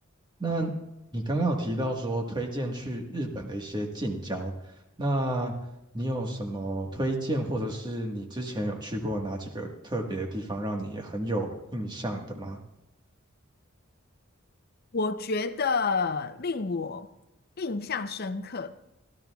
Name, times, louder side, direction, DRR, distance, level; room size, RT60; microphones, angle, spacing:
voice 1, 0.4-0.7 1.1-4.5 5.0-5.5 5.9-12.6, right 1 dB, 20° right, 2 dB, 1.5 m, -31 dB
voice 2, 14.9-17.1 17.6-18.7, left 4 dB, 50° left, 10 dB, 0.6 m, -29 dB
24.0 x 13.0 x 2.4 m, 0.92 s
head